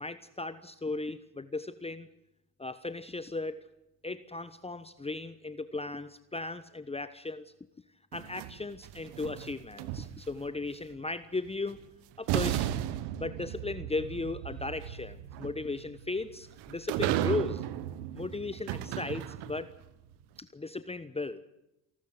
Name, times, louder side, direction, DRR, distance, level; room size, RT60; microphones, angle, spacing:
voice 1, 0.0-2.1 2.6-3.6 4.0-7.5 8.1-11.8 12.2-12.7 13.2-17.6 18.1-19.7 20.4-21.4, left 3 dB, 15° left, 13 dB, 1.1 m, -36 dB
sound 1, 8.1-10.5 11.7-11.8 12.3-19.8, right 12 dB, 70° right, 1.2 m, -35 dB
28.0 x 12.5 x 7.8 m, 0.87 s
hypercardioid pair, 60°, 42 cm